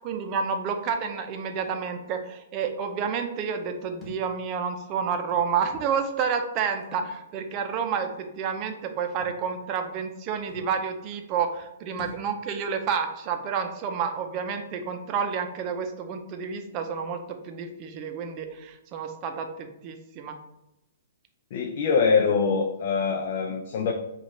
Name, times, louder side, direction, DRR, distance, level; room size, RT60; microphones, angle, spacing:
voice 1, 0.0-20.4, right 6 dB, 30° right, 6 dB, 0.6 m, -30 dB
Thump thud, 4.0-4.3 5.3-5.4 6.8-7.1 7.5-7.6 9.2-9.4 10.2-10.3 10.5-10.7 12.0-12.3, equal, ahead, 1.2 m, -44 dB
voice 2, 21.5-23.9, left 5 dB, 50° left, 2 dB, 0.5 m, -24 dB
5.0 x 2.4 x 4.2 m, 0.91 s
hypercardioid pair, 150°, 0 cm